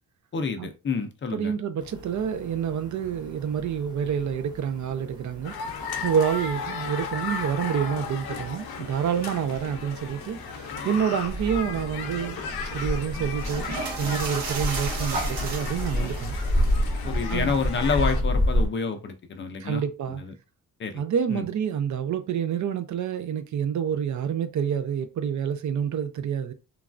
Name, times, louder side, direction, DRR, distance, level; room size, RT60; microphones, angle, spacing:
voice 1, 0.3-1.5 17.0-19.8 20.1-20.3 20.8-21.0 21.3-21.5, left 5 dB, 30° left, 0.4 m, -28 dB
voice 2, 1.3-5.5 6.0-12.5 12.7-13.6 14.0-16.4 17.3-17.6 19.6-20.2 20.9-26.5, right 8 dB, 50° right, 0.4 m, -28 dB
sound 1, 1.8-18.7, equal, 10° right, 0.7 m, -31 dB
sound 2, 5.4-18.2, left 6 dB, 75° left, 0.7 m, -36 dB
sound 3, 11.3-16.8, right 3 dB, 90° right, 1.1 m, -34 dB
3.1 x 2.3 x 2.4 m
cardioid pair, 140°, 38 cm